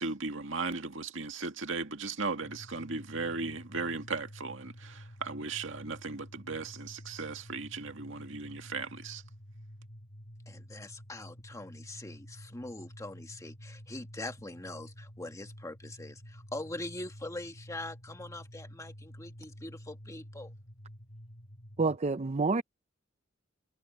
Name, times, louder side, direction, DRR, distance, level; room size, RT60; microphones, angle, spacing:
voice 1, 0.0-9.2, right 4 dB, 70° right, 2.2 m, -37 dB
sound 1, 2.4-22.0, equal, 60° left, 5.3 m, -50 dB
voice 2, 10.5-20.5, left 2 dB, 15° left, 1.6 m, -43 dB
voice 3, 21.8-22.6, right 3 dB, 35° right, 0.5 m, -28 dB
head